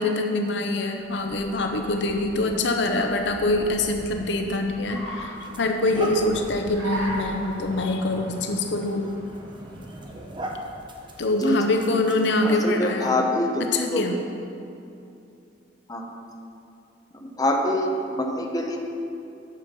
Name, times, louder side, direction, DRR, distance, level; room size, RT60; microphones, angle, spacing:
voice 1, 0.0-9.1 11.2-13.3 13.6-14.2, left 2 dB, 65° left, 4 dB, 0.7 m, -24 dB
Car, 0.9-10.5, right 1 dB, 70° right, 2.7 m, -39 dB
sound 1, 4.6-4.8 5.4-12.8, right 1 dB, 25° right, 0.8 m, -39 dB
voice 2, 12.4-14.1 15.9-16.1 17.1-18.8, left 1 dB, 20° left, 0 dB, 0.9 m, -25 dB
10.0 x 7.0 x 5.4 m, 2.7 s
head